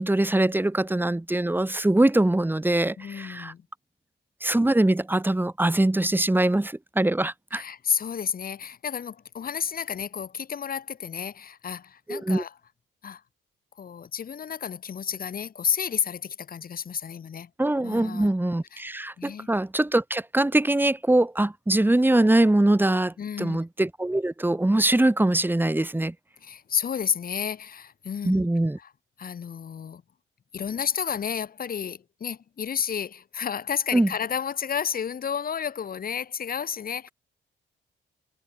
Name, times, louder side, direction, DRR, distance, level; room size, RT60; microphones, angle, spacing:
voice 1, 0.0-3.5 4.4-7.6 12.1-12.4 17.6-26.1 28.2-28.8 33.9-34.1, right 1 dB, 10° right, 3.2 m, -23 dB
voice 2, 3.0-3.6 7.5-12.5 13.0-13.2 13.8-17.5 17.8-18.3 18.7-18.8 19.2-19.5 23.2-23.6 26.4-28.4 28.8-28.9 29.2-30.0 30.5-37.1, left 7 dB, 50° left, 2.2 m, -31 dB
cardioid pair, 90°, 20 cm